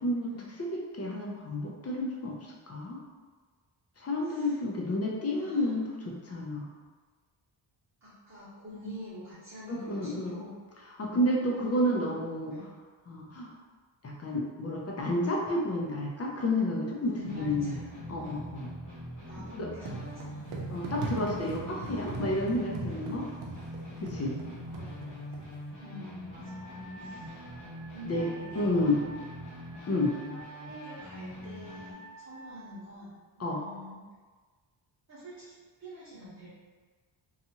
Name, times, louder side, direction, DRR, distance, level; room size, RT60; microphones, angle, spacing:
voice 1, 0.0-0.3 0.6-3.0 4.0-6.7 9.7-10.3 11.0-12.5 13.1-13.5 14.0-17.8 18.1-18.7 19.5-19.7 20.7-23.3 24.0-24.4 28.1-28.3 28.6-29.0 29.9-30.1 33.4-33.6, left 1 dB, 35° left, -2 dB, 0.4 m, -30 dB
voice 2, 4.2-4.6 5.3-5.7 8.0-10.6 11.4-12.1 12.5-12.7 17.0-18.5 19.3-20.5 21.7-22.0 24.7-25.2 25.8-26.7 26.9-27.3 27.9-29.0 30.6-34.0 35.1-35.5 35.8-36.5, left 1 dB, 35° right, -12 dB, 0.9 m, -46 dB
sound 1, 17.3-31.9, equal, 60° left, 0.9 m, -43 dB
sound 2, 19.8-25.6, right 3 dB, 75° right, 0.6 m, -40 dB
Wind instrument woodwind instrument, 26.4-32.8, equal, 10° right, 0.8 m, -50 dB
2.7 x 2.3 x 2.7 m, 1.4 s
wide cardioid pair, 135°, 49 cm